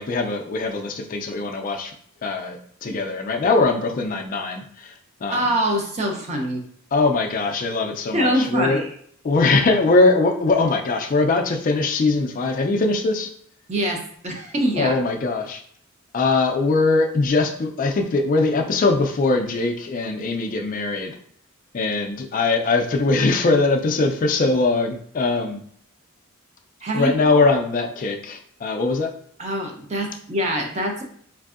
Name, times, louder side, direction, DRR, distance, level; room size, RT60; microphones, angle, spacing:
voice 1, 0.0-1.9 2.2-4.9 5.2-5.4 6.9-8.8 9.2-13.3 14.8-15.6 16.1-21.1 21.7-25.6 26.9-29.1, left 3 dB, 40° left, 3 dB, 0.3 m, -21 dB
voice 2, 5.3-6.6 8.1-9.0 13.7-15.0 26.8-27.1 29.4-31.0, right 1 dB, 30° right, 2 dB, 0.5 m, -24 dB
4.0 x 2.6 x 2.4 m, 0.62 s
head